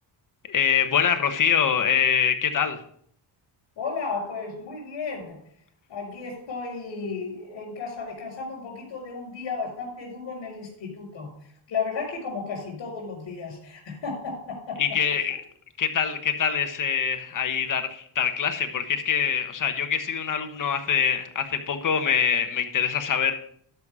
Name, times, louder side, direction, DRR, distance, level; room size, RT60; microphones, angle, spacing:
voice 1, 0.5-2.8 14.8-15.4 15.8-23.3, left 7 dB, 40° left, 7 dB, 1.2 m, -24 dB
voice 2, 3.8-5.4 5.9-11.3 11.7-14.8, left 4 dB, 60° left, -5 dB, 5.1 m, -33 dB
12.0 x 5.7 x 4.9 m, 0.63 s
cardioid pair, 115°, 48 cm